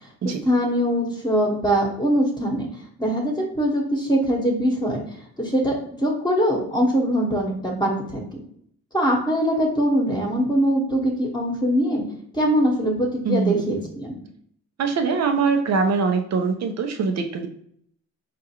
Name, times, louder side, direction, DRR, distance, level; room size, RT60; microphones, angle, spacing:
voice 1, 0.4-2.7 3.0-5.0 5.4-5.7 6.0-8.4 8.9-12.0 12.3-14.2, equal, 15° left, -2 dB, 1.1 m, -22 dB
voice 2, 13.2-13.8 14.8-17.5, right 4 dB, 60° right, 5 dB, 0.7 m, -23 dB
4.5 x 2.5 x 2.9 m, 0.66 s
cardioid pair, 90°, 30 cm